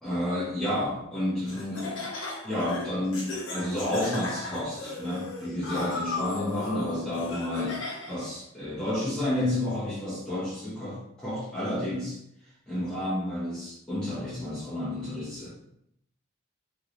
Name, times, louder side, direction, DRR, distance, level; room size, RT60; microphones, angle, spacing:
voice 1, 0.0-2.1 2.4-7.8 8.1-12.2 12.7-15.5, left 1 dB, 5° left, -11 dB, 0.8 m, -30 dB
Laughter, 1.5-8.3, left 2 dB, 80° left, 0.8 m, -36 dB
3.3 x 3.1 x 2.5 m, 0.74 s
head